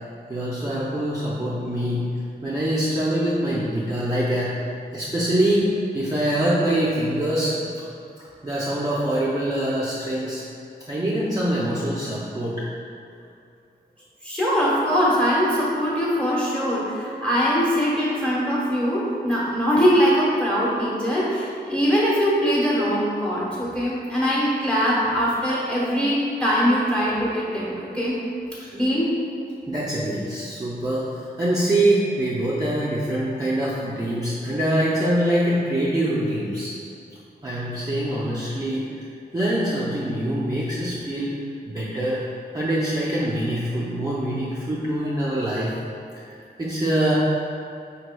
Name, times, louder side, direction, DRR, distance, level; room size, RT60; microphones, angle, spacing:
voice 1, 0.3-2.1 2.4-4.6 4.9-7.7 8.2-10.4 10.9-12.6 28.5-28.7 29.7-36.7 37.4-39.1 39.3-41.3 41.7-42.2 42.5-45.7 46.2-47.2, right 1 dB, 20° right, -8 dB, 0.4 m, -24 dB
voice 2, 14.2-28.2 28.7-29.1, equal, 5° left, -8 dB, 1.0 m, -22 dB
5.2 x 3.0 x 2.2 m, 2.5 s
wide cardioid pair, 135°, 17 cm